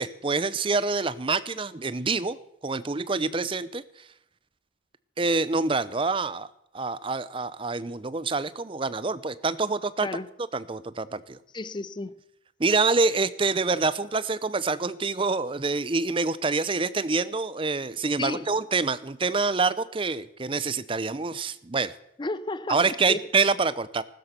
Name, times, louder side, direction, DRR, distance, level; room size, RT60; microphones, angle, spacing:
voice 1, 0.0-2.4 2.6-4.1 5.2-6.5 6.7-10.1 10.5-11.4 12.6-21.9 22.7-24.0, right 4 dB, 25° right, 0.6 m, -26 dB
voice 2, 11.5-12.1 18.2-18.5 22.2-23.2, left 2 dB, 25° left, 0.5 m, -32 dB
15.5 x 13.0 x 6.7 m
head